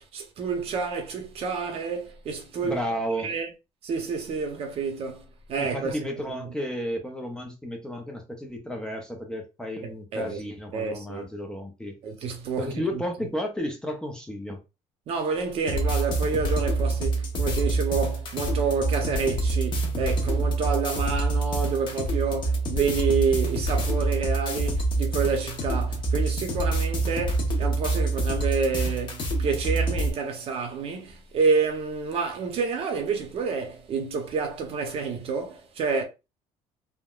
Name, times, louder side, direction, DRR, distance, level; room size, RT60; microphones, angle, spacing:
voice 1, 0.1-2.8 3.2-3.5 3.8-5.2 5.5-5.9 6.4-6.5 9.8-10.4 10.7-11.2 12.0-13.0 15.1-36.0, right 5 dB, 50° right, 0.8 m, -28 dB
voice 2, 2.6-3.3 5.6-12.0 12.6-14.6, equal, 5° left, 0.5 m, -32 dB
sound 1, 15.7-30.1, right 2 dB, 40° left, 0.8 m, -26 dB
3.6 x 2.1 x 2.3 m
cardioid pair, 135°, 13 cm